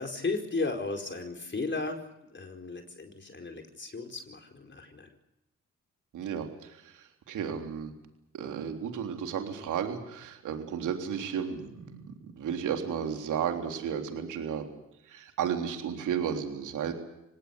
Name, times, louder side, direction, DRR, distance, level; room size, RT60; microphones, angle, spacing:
voice 1, 0.0-2.0 2.3-5.1, left 3 dB, 40° left, 4 dB, 4.7 m, -35 dB
voice 2, 6.1-7.9 8.3-14.7 15.1-16.9, right 8 dB, 80° right, 5 dB, 3.6 m, -33 dB
26.5 x 18.5 x 8.3 m, 0.86 s
supercardioid pair, 50°, 30 cm